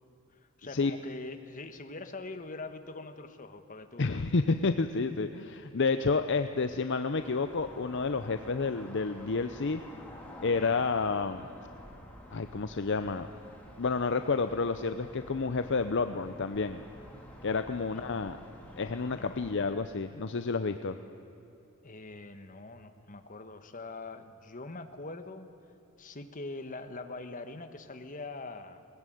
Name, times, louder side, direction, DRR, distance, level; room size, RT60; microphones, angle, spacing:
voice 1, 0.3-4.2 10.6-10.8 17.9-18.1 19.2-19.4 21.8-25.5 26.0-28.9, left 3 dB, 35° left, 8 dB, 1.4 m, -43 dB
voice 2, 4.0-9.8 10.4-11.5 12.3-13.3 13.8-16.8 17.4-18.4 18.8-20.9, left 4 dB, 55° left, 9 dB, 0.7 m, -30 dB
sound 1, 7.1-19.7, left 1 dB, 5° left, 3.1 m, -50 dB
20.5 x 19.5 x 9.3 m, 3.0 s
head